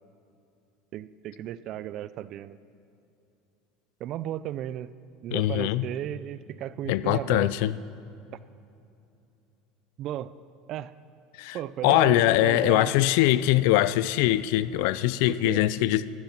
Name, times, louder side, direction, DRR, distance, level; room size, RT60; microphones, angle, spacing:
voice 1, 0.9-2.6 4.0-4.9 5.2-7.5 10.0-10.3 10.7-10.9 11.5-12.9 15.3-15.6, right 12 dB, 40° right, 0.3 m, -34 dB
voice 2, 5.3-5.8 6.9-7.7 11.4-11.6 11.8-16.1, left 15 dB, 65° left, 0.4 m, -22 dB
14.0 x 10.5 x 5.9 m
cardioid pair, 170°, 0 cm